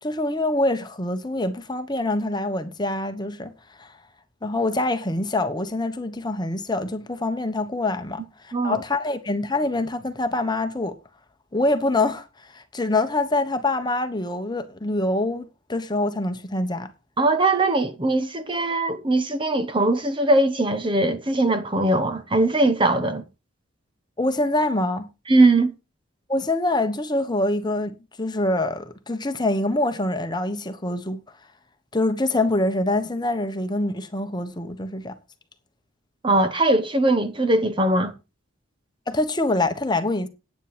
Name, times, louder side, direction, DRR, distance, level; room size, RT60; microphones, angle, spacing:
voice 1, 0.0-3.5 3.8-3.9 4.4-11.0 11.5-12.3 12.5-16.9 24.2-25.1 26.3-31.2 31.9-35.1 39.1-40.3, left 2 dB, 20° left, 1.2 m, -25 dB
voice 2, 17.2-23.2 25.3-25.7 36.2-38.1, right 2 dB, 25° right, 1.1 m, -20 dB
9.9 x 9.3 x 5.1 m
head